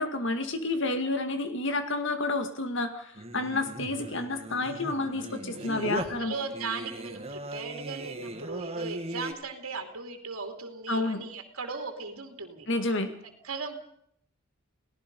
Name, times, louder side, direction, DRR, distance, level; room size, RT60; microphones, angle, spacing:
voice 1, 0.0-6.3 10.9-11.2 12.7-13.1, left 2 dB, 60° left, 8 dB, 2.1 m, -30 dB
Singing, 3.1-9.3, right 1 dB, 30° right, 1.7 m, -38 dB
voice 2, 5.7-12.7 13.4-13.7, right 4 dB, 80° right, 4 dB, 2.8 m, -37 dB
29.0 x 18.0 x 5.4 m, 0.69 s
head